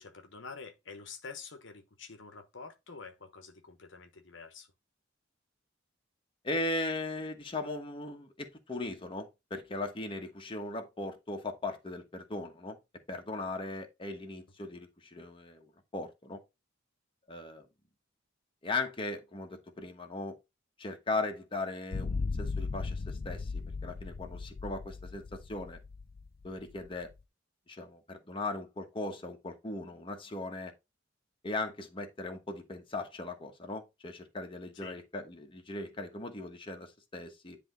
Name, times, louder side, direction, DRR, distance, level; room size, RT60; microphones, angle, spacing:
voice 1, 0.0-4.7 34.7-35.0, left 4 dB, 65° left, 1.1 m, -47 dB
voice 2, 6.4-12.8 13.1-16.4 17.3-17.7 18.6-20.4 20.8-25.8 26.4-27.1 27.7-30.7 31.4-37.6, left 2 dB, 25° left, 1.2 m, -38 dB
sound 1, 21.9-27.1, left 4 dB, 50° left, 0.5 m, -37 dB
9.9 x 3.5 x 3.9 m
head